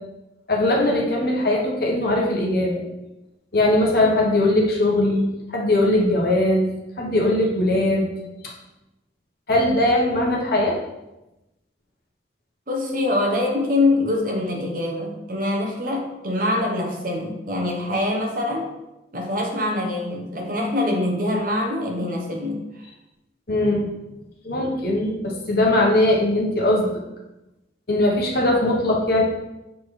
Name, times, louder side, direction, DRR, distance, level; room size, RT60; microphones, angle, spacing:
voice 1, 0.5-2.8 3.5-6.7 7.0-8.1 8.4-8.5 9.5-10.8 23.5-23.9 24.4-27.0 27.9-29.2, left 1 dB, 55° left, -2 dB, 1.2 m, -20 dB
voice 2, 12.7-18.7 19.1-22.6, left 2 dB, 45° right, 1 dB, 1.0 m, -24 dB
7.2 x 4.2 x 3.3 m, 0.97 s
head